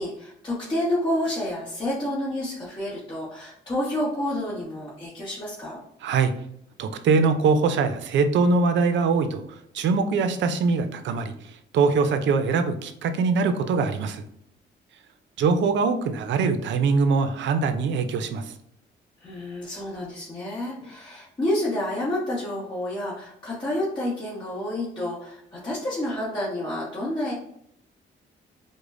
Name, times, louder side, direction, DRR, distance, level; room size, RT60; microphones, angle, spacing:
voice 1, 0.0-5.8 19.2-27.3, left 1 dB, 25° left, -8 dB, 1.1 m, -29 dB
voice 2, 6.8-9.4 9.7-11.3 11.7-14.2 15.4-18.4, right 4 dB, 65° right, 9 dB, 0.5 m, -22 dB
4.9 x 2.1 x 2.5 m, 0.72 s
cardioid pair, 90°, 20 cm